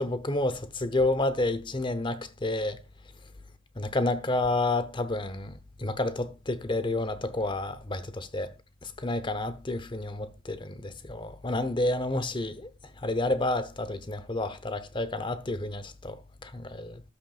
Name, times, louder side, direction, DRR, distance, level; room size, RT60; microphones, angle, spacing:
voice 1, 0.0-2.8 3.8-8.5 8.8-17.0, left 2 dB, 25° left, 0.8 m, -30 dB
13.5 x 12.0 x 2.4 m
head